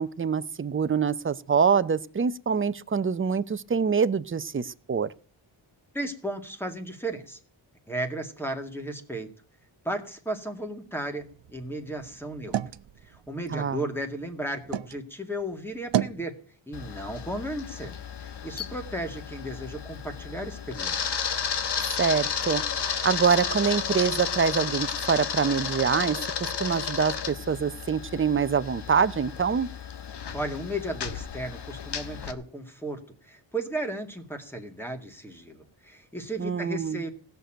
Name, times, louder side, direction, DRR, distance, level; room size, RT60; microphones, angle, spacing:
voice 1, 0.0-5.1 13.5-13.8 22.0-22.6 23.0-29.7 36.4-37.0, right 6 dB, 25° right, 14 dB, 0.6 m, -25 dB
voice 2, 5.9-7.4 7.9-9.3 9.8-12.6 13.0-16.3 16.7-17.9 18.4-21.3 30.3-37.1, right 1 dB, 5° left, 5 dB, 2.1 m, -34 dB
sound 1, 11.2-15.0 15.4-16.3, right 10 dB, 65° right, 0.7 m, -34 dB
Camera, 16.7-32.3, left 7 dB, 60° left, 1.3 m, -33 dB
16.5 x 6.9 x 8.9 m, 0.42 s
wide cardioid pair, 150°, 46 cm